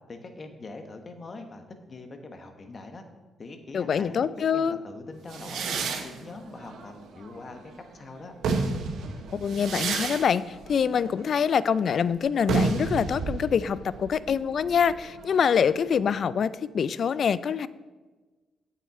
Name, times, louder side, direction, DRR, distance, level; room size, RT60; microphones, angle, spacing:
voice 1, 0.0-3.0 3.4-7.6 7.9-8.3, left 3 dB, 40° left, 6 dB, 1.3 m, -43 dB
voice 2, 3.7-4.8 9.3-17.7, left 7 dB, 60° left, 17 dB, 0.3 m, -25 dB
sound 1, 5.3-7.8 8.2-15.7, right 4 dB, 75° right, 1.0 m, -32 dB
8.4 x 7.4 x 4.3 m, 1.3 s
supercardioid pair, 60°, 0 cm